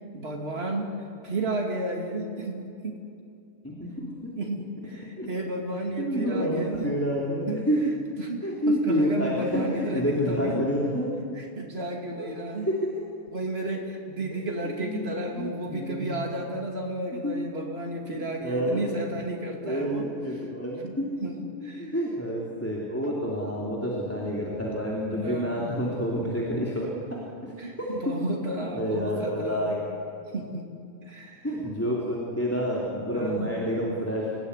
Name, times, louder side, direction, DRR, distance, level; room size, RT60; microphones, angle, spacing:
voice 1, 0.1-0.9 1.2-3.0 4.3-7.0 7.5-10.6 11.3-12.7 13.3-20.4 20.8-21.9 24.6-24.7 25.1-25.7 27.6-29.8 30.3-30.7 31.0-31.5 33.1-33.6, right 2 dB, 65° right, 0 dB, 3.0 m, -33 dB
voice 2, 3.6-4.1 5.2-5.3 6.0-7.8 8.4-11.1 12.2-12.3 14.8-16.1 17.2-17.4 18.1-18.8 19.5-21.1 21.8-27.2 27.8-27.9 28.6-29.8 31.4-34.3, equal, 15° left, -4 dB, 3.2 m, -28 dB
27.0 x 18.0 x 9.8 m, 2.5 s
omnidirectional pair, 1.1 m